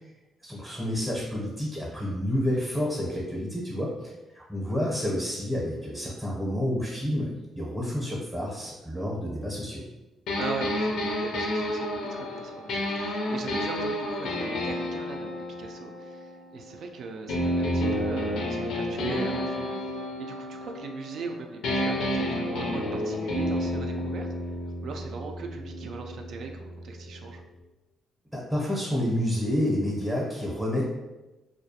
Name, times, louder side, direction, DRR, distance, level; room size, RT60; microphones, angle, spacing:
voice 1, 0.4-9.8 28.3-30.8, left 1 dB, 10° right, -4 dB, 0.7 m, -29 dB
sound 1, 10.3-16.8 17.3-21.3 21.6-27.4, left 1 dB, 80° left, 0.4 m, -30 dB
voice 2, 10.4-24.5 24.8-27.4, right 4 dB, 65° right, 3 dB, 0.3 m, -40 dB
2.3 x 2.1 x 2.7 m, 1.1 s
cardioid pair, 90°, 0 cm